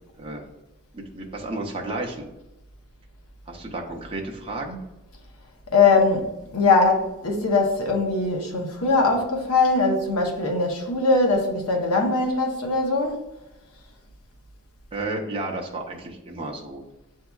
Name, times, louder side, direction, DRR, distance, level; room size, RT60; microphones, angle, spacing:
voice 1, 0.9-2.3 3.5-4.8 14.9-16.8, right 2 dB, 25° right, 0.7 m, -32 dB
voice 2, 5.7-13.2, left 3 dB, 75° left, 0.9 m, -21 dB
7.9 x 2.7 x 2.3 m
head